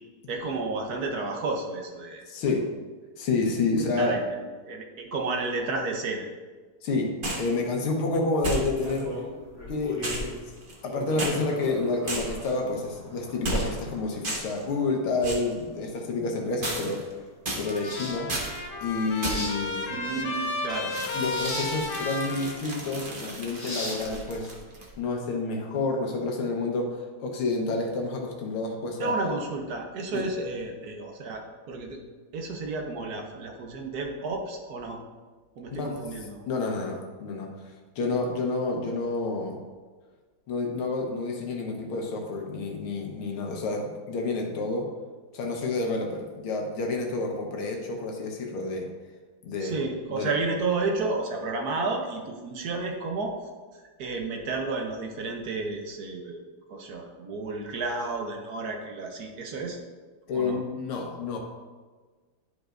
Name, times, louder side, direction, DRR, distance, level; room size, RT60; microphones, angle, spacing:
voice 1, 0.3-2.2 4.0-4.2 4.6-6.3 19.9-20.9 29.0-32.0 32.3-35.0 35.6-36.4 49.6-53.3 54.0-56.4 56.7-59.8 60.3-60.6, right 3 dB, 60° right, 2 dB, 1.1 m, -31 dB
voice 2, 2.3-2.6 3.2-4.1 6.8-9.1 9.7-10.5 10.8-17.0 17.6-18.3 18.8-20.0 21.1-24.5 25.0-29.3 30.1-30.2 35.7-36.0 36.5-39.6 40.5-44.9 45.3-48.9 49.4-49.8 50.1-50.3 60.3-61.4, left 3 dB, 80° left, 1 dB, 1.9 m, -29 dB
sound 1, 7.2-7.5 8.4-9.0 10.0-10.9 11.2-11.4 12.1-12.5 13.4-13.9 14.2-14.6 15.2-15.5 16.6-17.1 17.4-17.9 18.3-18.6 19.2-19.6 20.9-24.9, right 1 dB, 35° right, 1.0 m, -33 dB
sound 2, 8.8-25.0, left 1 dB, 20° left, 1.9 m, -41 dB
Trumpet, 17.6-23.2, left 2 dB, 60° left, 0.8 m, -33 dB
11.5 x 5.3 x 2.5 m, 1.4 s
omnidirectional pair, 2.3 m